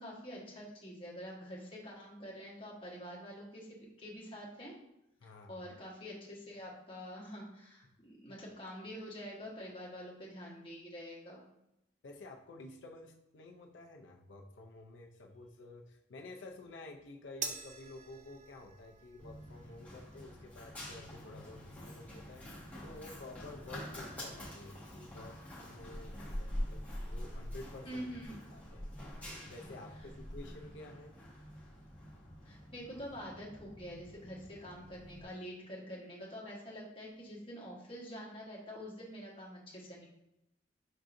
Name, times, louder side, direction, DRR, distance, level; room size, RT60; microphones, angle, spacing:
voice 1, 0.0-4.8 5.2-11.4 27.8-28.4 32.4-40.1, equal, 30° left, -4 dB, 1.1 m, -46 dB
voice 2, 5.2-5.6 8.3-8.4 12.0-28.1 28.5-28.9 29.2-31.1, left 2 dB, 85° left, 1 dB, 0.5 m, -51 dB
sound 1, 17.4-24.0, right 5 dB, 40° right, 0.4 m, -49 dB
Run, 19.2-35.2, equal, 10° left, 1.4 m, -46 dB
5.4 x 3.7 x 2.5 m, 0.85 s
head